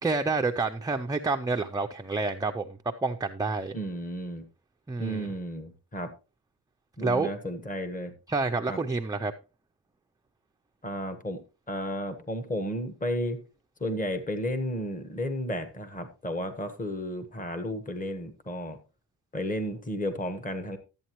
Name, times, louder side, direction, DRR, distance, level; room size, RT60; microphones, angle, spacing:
voice 1, 0.0-3.7 4.9-5.3 7.0-7.3 8.3-9.3, right 3 dB, 10° right, 0.4 m, -28 dB
voice 2, 3.7-4.5 5.0-6.1 7.0-8.1 8.7-8.8 10.8-11.4 11.7-13.4 13.8-18.8 19.3-20.8, equal, 20° left, 1.2 m, -33 dB
12.5 x 8.5 x 3.0 m
cardioid pair, 105°, 43 cm